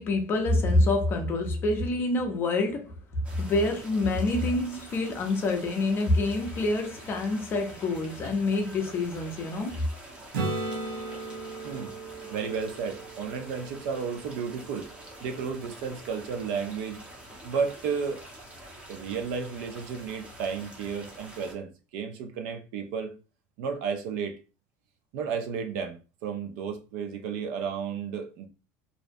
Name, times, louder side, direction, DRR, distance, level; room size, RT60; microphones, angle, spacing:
voice 1, 0.0-3.0 3.4-9.9, left 2 dB, 30° left, 0.5 m, -26 dB
sound 1, 3.2-21.5, right 1 dB, 15° right, 0.6 m, -47 dB
voice 2, 4.3-4.7 11.6-11.9 12.3-14.9 15.2-17.0 17.4-18.2 18.9-23.2 23.6-24.4 25.1-28.5, right 6 dB, 65° right, 0.5 m, -33 dB
Acoustic guitar / Strum, 10.3-14.1 18.9-19.0, right 3 dB, 90° right, 0.8 m, -36 dB
2.6 x 2.0 x 2.5 m
cardioid pair, 150°, 8 cm